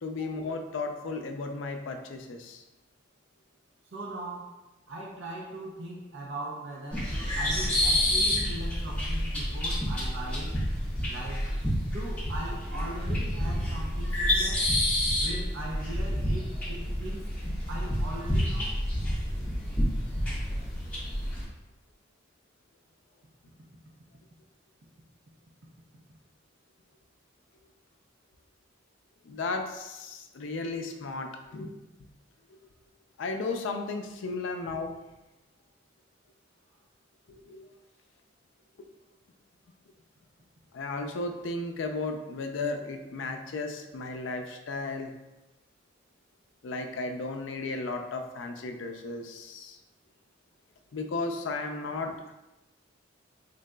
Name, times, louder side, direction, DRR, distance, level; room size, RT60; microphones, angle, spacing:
voice 1, 0.0-2.6 29.2-31.7 33.2-34.9 37.4-37.7 40.7-45.1 46.6-49.8 50.9-52.3, left 3 dB, 70° left, 5 dB, 0.4 m, -34 dB
voice 2, 3.8-4.6 4.9-10.6 11.1-11.5 11.9-14.7 15.2-17.3 17.7-18.8, right 1 dB, 70° right, -2 dB, 0.6 m, -40 dB
sound 1, 6.9-21.4, equal, 5° left, 1.3 m, -29 dB
3.9 x 3.7 x 2.2 m, 1.0 s
head